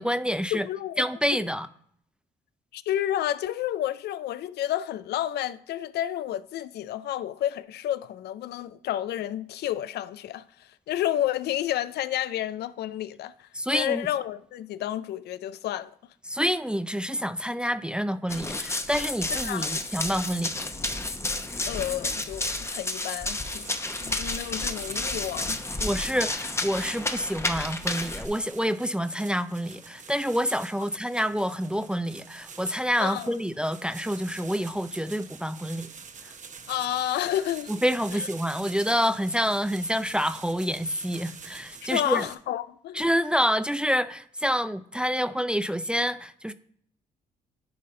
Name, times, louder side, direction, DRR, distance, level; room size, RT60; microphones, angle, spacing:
voice 1, 0.0-0.7 1.0-1.7 13.5-14.1 16.3-20.7 25.8-35.9 37.7-42.3 42.9-46.5, equal, 5° right, 0.4 m, -27 dB
voice 2, 0.5-1.0 2.7-15.9 19.4-19.7 21.7-23.7 24.0-25.6 33.0-33.3 36.7-37.7 38.1-38.3 41.8-43.0, left 12 dB, 75° left, 0.4 m, -30 dB
Run, 18.3-28.3, left 2 dB, 15° left, 0.9 m, -31 dB
sound 1, 23.3-42.4, right 5 dB, 45° right, 0.9 m, -46 dB
10.0 x 4.1 x 3.8 m
supercardioid pair, 65°, 17 cm